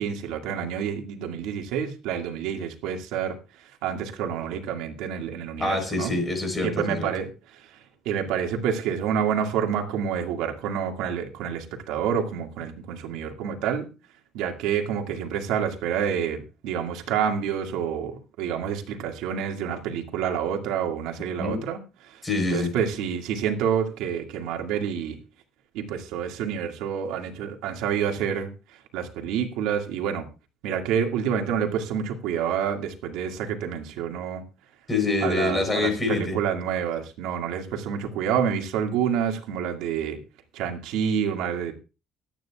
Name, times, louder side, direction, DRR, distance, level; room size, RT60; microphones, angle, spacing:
voice 1, 0.0-6.1 6.6-13.9 14.3-21.8 22.0-25.2 25.7-30.3 30.6-34.4 35.2-40.2 40.5-41.7, right 8 dB, 85° right, 3 dB, 2.1 m, -28 dB
voice 2, 5.6-7.1 21.4-21.6 22.2-22.7 34.9-36.4, left 3 dB, 15° left, 5 dB, 4.2 m, -25 dB
25.0 x 9.3 x 2.4 m, 0.32 s
cardioid pair, 165°, 0 cm